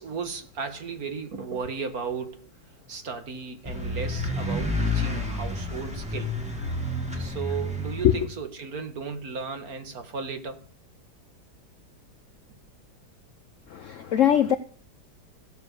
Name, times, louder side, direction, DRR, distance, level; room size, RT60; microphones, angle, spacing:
voice 1, 0.0-2.5 2.9-6.4 7.2-10.6, right 5 dB, 55° right, 2.1 m, -35 dB
sound 1, 3.6-8.2, left 1 dB, 5° right, 2.6 m, -30 dB
voice 2, 13.7-14.6, left 10 dB, 60° left, 0.8 m, -21 dB
15.0 x 6.9 x 6.7 m
omnidirectional pair, 1.9 m